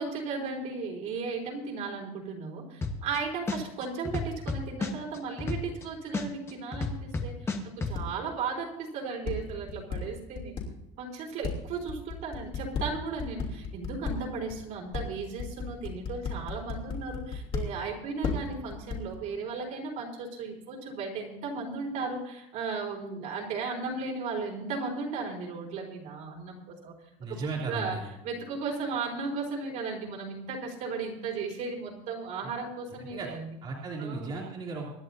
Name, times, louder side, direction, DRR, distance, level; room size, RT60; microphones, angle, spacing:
voice 1, 0.0-7.0 7.2-7.3 7.6-10.5 11.0-26.9 27.3-28.0 28.2-33.6 34.0-34.3, right 4 dB, 50° right, -1 dB, 4.0 m, -35 dB
sound 1, 2.8-3.2 3.5-5.8 6.1-7.9, left 3 dB, 15° left, 1.3 m, -31 dB
sound 2, 8.0-8.1 9.2-10.6 11.4-14.1 14.5-14.6 14.9-17.6 18.2-19.2, left 7 dB, 35° left, 3.1 m, -33 dB
voice 2, 27.2-28.0 33.1-33.3 33.6-34.9, right 3 dB, 30° right, -6 dB, 3.1 m, -35 dB
25.0 x 11.0 x 2.8 m, 0.89 s
cardioid pair, 160°, 17 cm